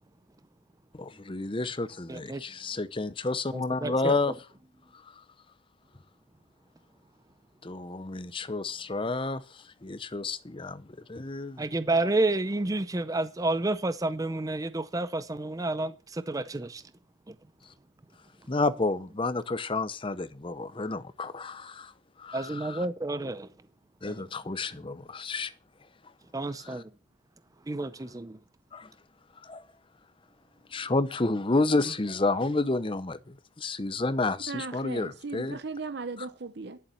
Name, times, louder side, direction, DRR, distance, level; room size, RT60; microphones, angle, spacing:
voice 1, 0.9-4.3 7.6-11.7 18.5-21.9 22.2-22.9 24.0-25.5 26.6-26.8 28.7-28.9 29.4-29.6 30.7-35.6, left 3 dB, 25° left, 0.7 m, -30 dB
voice 2, 2.1-2.4 3.5-4.2 11.6-16.8 17.3-17.4 22.3-23.5 26.3-26.8 27.7-28.4, right 2 dB, 15° right, 0.5 m, -30 dB
voice 3, 34.5-36.8, right 4 dB, 55° right, 0.8 m, -37 dB
11.0 x 7.1 x 7.0 m
head